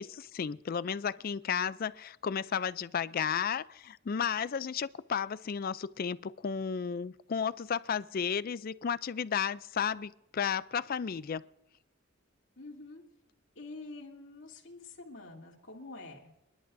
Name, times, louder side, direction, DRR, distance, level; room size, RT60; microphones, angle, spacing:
voice 1, 0.0-11.4, left 7 dB, 45° left, 0.4 m, -33 dB
voice 2, 12.6-13.0 13.5-16.4, left 3 dB, 60° left, 2.9 m, -47 dB
28.5 x 11.0 x 2.6 m
head